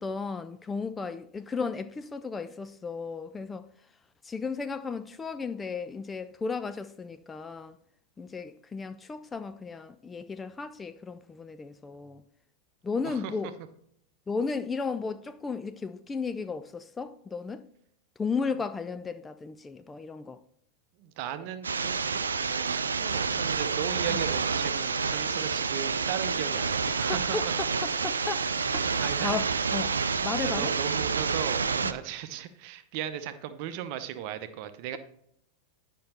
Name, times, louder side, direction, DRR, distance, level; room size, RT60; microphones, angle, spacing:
voice 1, 0.0-3.7 4.2-7.8 8.2-12.2 12.8-13.5 14.3-17.6 18.2-20.4 24.1-24.2 27.1-29.9 30.2-30.7 31.8-31.9, left 4 dB, 15° left, 0.4 m, -34 dB
voice 2, 13.0-13.5 18.4-18.5 21.0-27.5 28.8-29.8 30.4-35.0, right 10 dB, 45° right, 0.8 m, -37 dB
sound 1, 21.6-31.9, right 5 dB, 75° right, 0.4 m, -28 dB
10.5 x 5.4 x 4.2 m
figure-of-eight pair, 90°, 0 cm